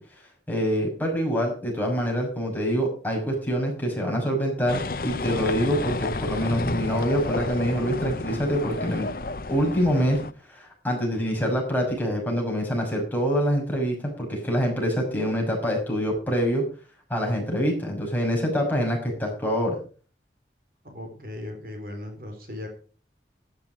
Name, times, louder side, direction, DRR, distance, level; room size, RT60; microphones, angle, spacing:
voice 1, 0.5-9.1 9.5-10.2 10.5-16.6 17.1-19.8, equal, 10° left, -1 dB, 6.0 m, -25 dB
sound 1, 4.7-10.3, left 2 dB, 50° left, 0.8 m, -31 dB
voice 2, 20.8-22.7, left 1 dB, 55° right, 4 dB, 4.2 m, -37 dB
13.5 x 11.0 x 5.0 m, 0.39 s
head